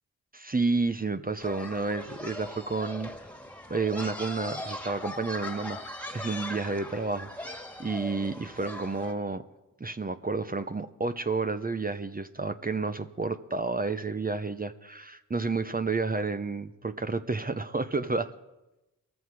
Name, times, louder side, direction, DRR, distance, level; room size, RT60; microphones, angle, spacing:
voice 1, 0.3-3.1 3.7-5.8 6.1-9.4 9.8-18.3, right 3 dB, 25° right, 9 dB, 0.8 m, -30 dB
sound 1, 1.4-9.1, left 1 dB, 5° left, 1.9 m, -40 dB
21.0 x 14.5 x 4.8 m, 0.99 s
cardioid pair, 50°, 36 cm